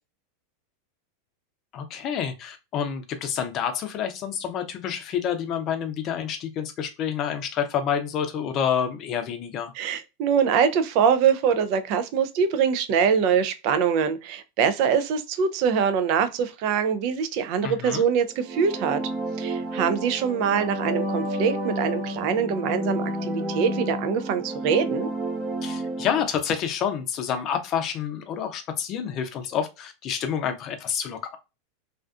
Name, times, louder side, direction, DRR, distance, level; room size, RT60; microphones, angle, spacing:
voice 1, 1.7-9.7 17.6-18.0 25.6-31.4, left 8 dB, 45° left, 0.5 m, -28 dB
voice 2, 9.7-19.0 19.4-25.1, right 7 dB, 55° right, 0.4 m, -23 dB
sound 1, 18.3-26.2, right 1 dB, 25° right, 0.7 m, -30 dB
2.4 x 2.3 x 2.3 m
hypercardioid pair, 105°, 0 cm